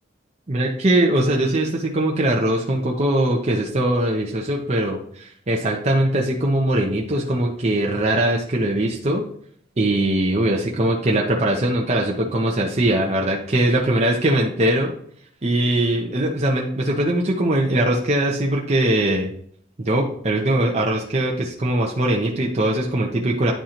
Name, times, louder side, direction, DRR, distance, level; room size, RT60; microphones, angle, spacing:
voice 1, 0.5-9.2 9.8-14.9 15.4-19.3 19.8-23.5, right 1 dB, 35° right, -1 dB, 0.8 m, -21 dB
10.5 x 3.8 x 2.9 m, 0.64 s
head